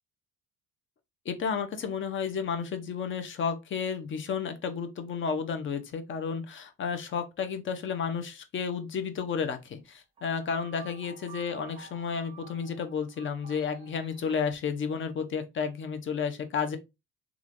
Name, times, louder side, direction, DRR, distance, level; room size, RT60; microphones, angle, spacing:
voice 1, 1.3-16.8, left 6 dB, 40° left, 0.6 m, -32 dB
sound 1, 10.2-14.5, right 7 dB, 20° right, 1.0 m, -50 dB
3.0 x 2.4 x 2.5 m
cardioid pair, 90°, 30 cm